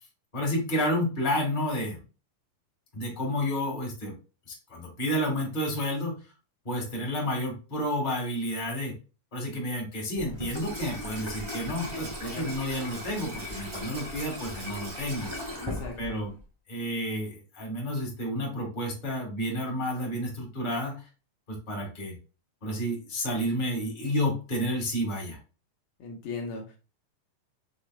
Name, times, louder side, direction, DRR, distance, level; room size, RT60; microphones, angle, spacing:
voice 1, 0.3-2.0 2.9-4.1 4.7-6.1 6.6-8.9 9.3-15.6 16.0-16.3 16.7-20.9 21.5-22.2 22.6-25.4, equal, 25° left, -1 dB, 0.9 m, -30 dB
Water tap faucet / Sink (filling or washing), 10.1-16.4, left 1 dB, 50° right, 0.3 m, -38 dB
voice 2, 15.5-16.0 26.0-26.8, left 4 dB, 75° left, 2 dB, 2.3 m, -38 dB
6.4 x 3.6 x 2.2 m, 0.33 s
omnidirectional pair, 3.7 m